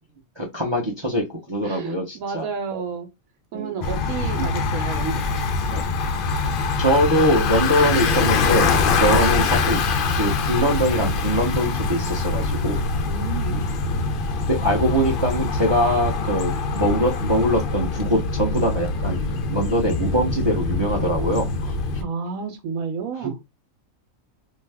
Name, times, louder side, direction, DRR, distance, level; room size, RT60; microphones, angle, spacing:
voice 1, 0.4-2.5 3.5-3.7 4.4-4.5 6.8-9.8 10.2-12.9 14.5-21.7 23.2-23.3, equal, 40° right, 0.4 m, -23 dB
voice 2, 1.6-3.1 3.5-5.9 13.0-13.6 22.0-23.4, right 5 dB, 80° right, 1.0 m, -31 dB
Bicycle, 3.8-22.0, left 4 dB, 70° left, 0.5 m, -23 dB
2.6 x 2.2 x 3.3 m
omnidirectional pair, 1.5 m